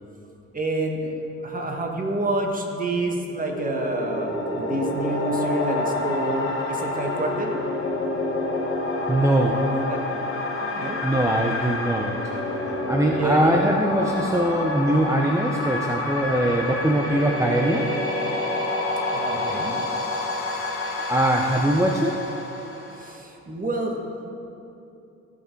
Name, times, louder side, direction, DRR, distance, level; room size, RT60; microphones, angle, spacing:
voice 1, 0.5-1.1 1.4-7.5 9.3-10.2 10.6-11.0 13.1-13.6 19.1-19.8 22.9-24.3, right 1 dB, 25° right, 1 dB, 1.6 m, -28 dB
sound 1, 3.3-23.2, left 2 dB, 45° left, 2.1 m, -28 dB
voice 2, 9.1-9.6 11.0-12.2 12.9-17.9 21.1-22.2, right 1 dB, 10° right, 0 dB, 0.7 m, -22 dB
16.5 x 5.8 x 4.6 m, 2.8 s
cardioid pair, 90°, 30 cm